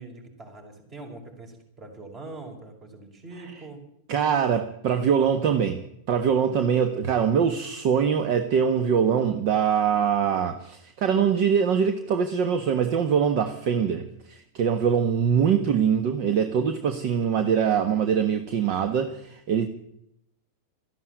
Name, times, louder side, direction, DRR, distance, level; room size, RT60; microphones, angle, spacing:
voice 1, 0.0-3.8 6.5-6.9, right 2 dB, 35° right, 3 dB, 5.7 m, -43 dB
voice 2, 4.1-5.8 6.1-19.7, right 7 dB, 55° right, 9 dB, 1.3 m, -23 dB
14.0 x 11.0 x 9.2 m, 0.78 s
hypercardioid pair, 110°, 0 cm